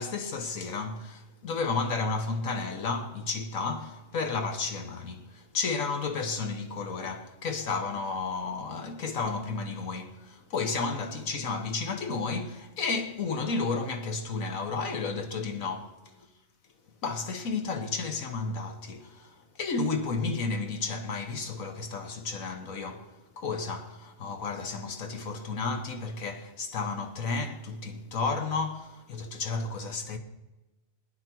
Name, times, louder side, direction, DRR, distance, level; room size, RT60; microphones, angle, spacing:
voice 1, 0.0-16.0 17.0-30.2, left 4 dB, 85° left, 1.7 m, -32 dB
21.0 x 9.5 x 4.5 m
omnidirectional pair, 1.4 m